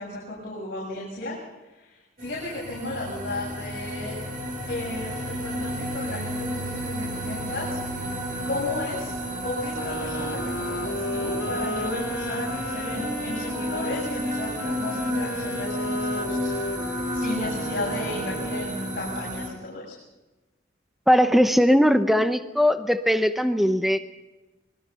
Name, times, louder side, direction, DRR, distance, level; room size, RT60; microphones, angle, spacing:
voice 1, 0.0-1.4 1.7-4.2 4.7-7.8 8.4-9.1 9.4-16.5 17.1-20.0, left 2 dB, 50° left, -5 dB, 7.2 m, -34 dB
sound 1, 2.2-19.5, equal, 40° right, 6.2 m, -32 dB
sound 2, 9.7-18.9, equal, 85° left, 3.4 m, -34 dB
voice 2, 21.1-24.0, equal, ahead, 9 dB, 0.8 m, -19 dB
25.0 x 22.0 x 5.7 m, 1.1 s
head